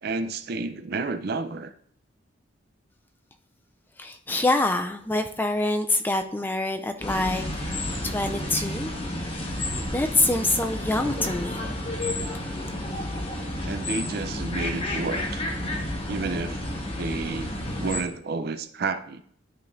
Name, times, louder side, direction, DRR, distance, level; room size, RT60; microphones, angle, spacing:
voice 1, 0.0-1.7 13.6-15.4 16.1-16.6 17.0-19.2, right 3 dB, 50° right, 10 dB, 0.5 m, -31 dB
voice 2, 4.0-7.7 8.0-8.9 9.2-9.6 9.9-11.8, left 2 dB, 10° left, 7 dB, 0.3 m, -26 dB
sound 1, 7.0-18.0, left 1 dB, 30° left, 1.2 m, -31 dB
11.5 x 5.1 x 2.6 m, 0.63 s
head